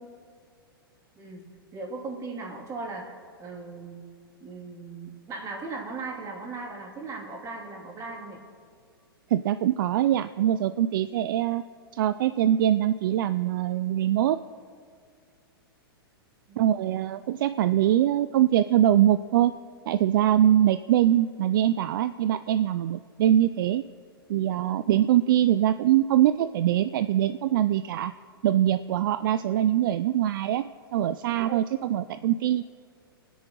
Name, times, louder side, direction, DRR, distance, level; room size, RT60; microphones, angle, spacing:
voice 1, 1.2-4.0 4.4-8.4, right 3 dB, 25° right, 0 dB, 2.9 m, -38 dB
voice 2, 9.3-11.6 11.9-14.4 16.6-19.5 19.9-23.8 24.3-28.1 28.4-32.6, right 11 dB, 60° right, 12 dB, 0.4 m, -23 dB
27.0 x 10.0 x 3.1 m, 2.2 s
hypercardioid pair, 120°, 13 cm